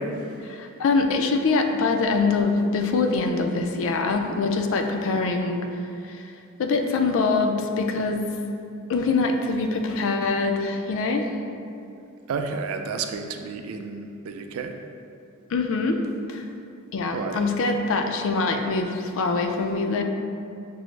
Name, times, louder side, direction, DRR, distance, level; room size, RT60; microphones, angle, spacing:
voice 1, 0.4-5.7 6.1-6.2 6.6-8.3 8.9-11.3 15.5-16.0 16.3-16.4 16.9-20.0, left 3 dB, 65° left, 4 dB, 0.3 m, -24 dB
voice 2, 12.3-14.7 17.1-17.4, right 5 dB, 75° right, 6 dB, 0.3 m, -31 dB
6.0 x 2.0 x 3.1 m, 2.6 s
head